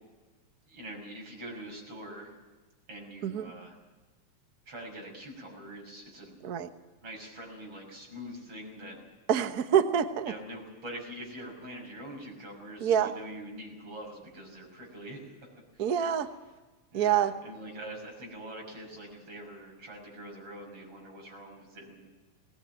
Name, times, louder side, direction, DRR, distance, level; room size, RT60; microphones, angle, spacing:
voice 1, 0.7-2.3 2.9-3.8 4.7-6.4 7.0-9.0 10.3-15.3 15.7-15.9 16.9-22.1, right 1 dB, 50° right, 0 dB, 7.0 m, -44 dB
voice 2, 9.3-10.3 12.8-13.1 15.8-16.3 16.9-17.3, right 9 dB, 90° right, 8 dB, 0.8 m, -26 dB
19.0 x 19.0 x 9.2 m, 1.2 s
omnidirectional pair, 3.5 m